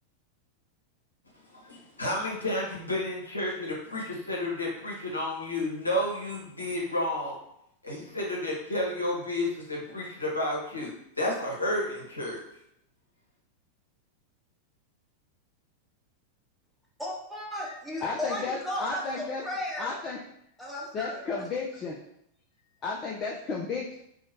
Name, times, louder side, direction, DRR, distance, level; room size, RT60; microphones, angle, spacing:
voice 1, 1.5-7.4 7.8-10.9 11.2-12.4, left 1 dB, 80° left, -2 dB, 0.7 m, -31 dB
voice 2, 17.0-19.9 20.6-21.5, left 1 dB, ahead, -5 dB, 0.7 m, -35 dB
voice 3, 18.0-19.4 19.8-20.2 20.9-22.0 22.8-24.0, left 4 dB, 30° left, -2 dB, 0.3 m, -33 dB
2.7 x 2.1 x 2.9 m, 0.75 s
figure-of-eight pair, 90°, 0 cm